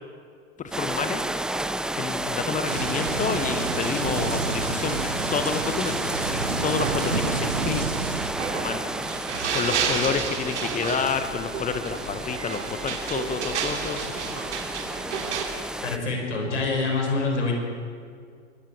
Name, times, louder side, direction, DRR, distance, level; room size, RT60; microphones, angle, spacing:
voice 1, 0.6-1.2 1.9-5.0 5.3-7.8 8.6-8.8 9.5-14.4, left 6 dB, 20° left, 9 dB, 1.3 m, -29 dB
sound 1, 0.7-16.0, right 1 dB, ahead, 0.5 m, -31 dB
sound 2, 2.7-8.3, right 4 dB, 90° right, 1.9 m, -30 dB
sound 3, 6.8-15.4, right 6 dB, 70° right, 3.5 m, -31 dB
voice 2, 15.8-17.5, left 3 dB, 75° left, 1 dB, 6.3 m, -26 dB
24.5 x 22.0 x 4.9 m, 2.2 s
figure-of-eight pair, 100°, 36 cm